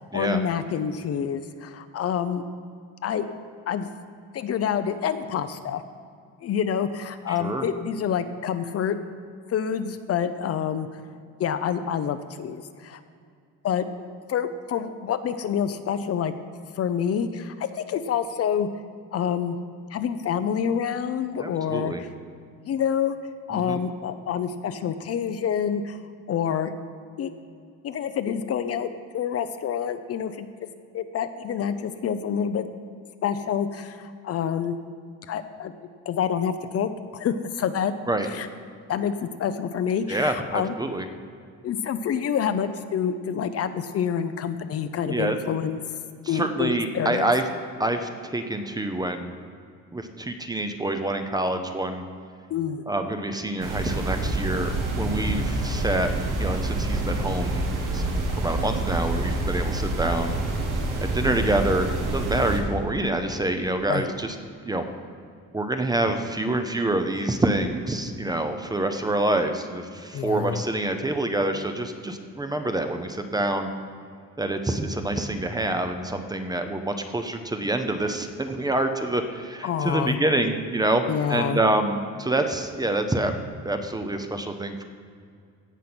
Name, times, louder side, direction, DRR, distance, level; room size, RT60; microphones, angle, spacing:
voice 1, 0.0-2.4 3.0-3.2 3.7-3.9 4.3-5.8 6.4-9.0 9.5-10.9 11.4-13.0 13.6-16.3 16.8-18.7 19.1-19.6 19.9-22.1 22.6-23.2 23.5-26.0 26.3-26.7 27.2-27.3 27.8-28.9 29.1-30.5 30.9-32.7 33.2-34.7 35.3-35.7 36.1-37.9 38.3-38.5 38.9-40.7 41.6-45.8 46.3-47.3 52.5-52.8 63.9-64.1 70.1-70.6 79.6-80.2 81.1-81.6, left 8 dB, 50° left, 10 dB, 0.6 m, -27 dB
voice 2, 7.3-7.6 21.4-22.0 23.5-23.8 38.1-38.3 40.1-41.1 45.1-45.4 46.2-47.4 47.8-49.3 49.9-52.0 52.9-56.1 56.4-58.0 58.4-60.3 61.1-64.4 64.7-64.8 65.5-73.7 74.4-81.0 81.3-83.3 83.6-84.8, right 2 dB, 10° right, 7 dB, 0.6 m, -26 dB
sound 1, 53.6-62.6, right 2 dB, 85° right, 2.1 m, -27 dB
16.5 x 5.5 x 6.1 m, 2.3 s
cardioid pair, 155°, 31 cm